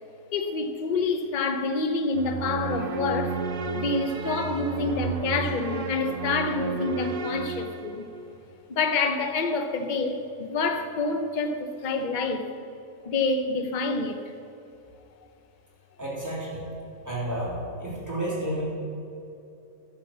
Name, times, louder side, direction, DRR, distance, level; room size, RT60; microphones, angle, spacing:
voice 1, 0.3-3.4 3.7-8.1 8.7-12.5 13.0-14.3, left 3 dB, 40° left, 6 dB, 0.7 m, -27 dB
sound 1, 2.1-8.2, right 4 dB, 65° right, 0.5 m, -32 dB
voice 2, 16.0-16.6 17.0-18.6, right 1 dB, 10° right, -7 dB, 3.2 m, -31 dB
11.0 x 7.3 x 7.4 m, 2.7 s
omnidirectional pair, 1.8 m